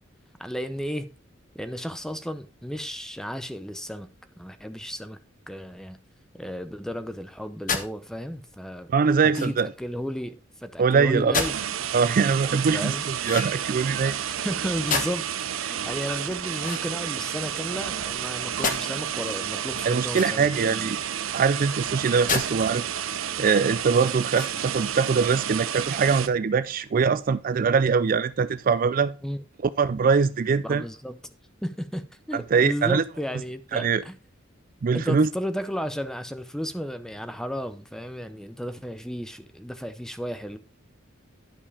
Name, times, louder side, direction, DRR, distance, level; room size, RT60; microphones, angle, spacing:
voice 1, 0.4-1.1 1.5-4.1 4.4-5.2 5.5-6.0 6.3-8.9 9.4-11.5 12.7-13.0 14.3-20.8 29.2-29.4 30.6-31.2 31.6-34.2 34.9-40.6, equal, 5° left, 0.7 m, -33 dB
sound 1, 7.7-7.9 9.3-9.7 11.3-11.7 13.2-13.8 14.9-15.4 16.6-17.4 18.6-18.8 20.1-20.6 22.3-22.5 23.0-23.1 24.3-24.8, left 5 dB, 40° left, 1.2 m, -30 dB
voice 2, 8.9-9.7 10.8-11.4 11.9-14.2 19.9-21.0 21.3-22.9 23.4-29.1 29.8-30.8 32.3-33.0 33.7-34.0 34.8-35.3, right 5 dB, 45° right, 0.4 m, -22 dB
sound 2, 11.4-26.3, right 9 dB, 85° right, 0.7 m, -31 dB
11.0 x 5.3 x 4.8 m
head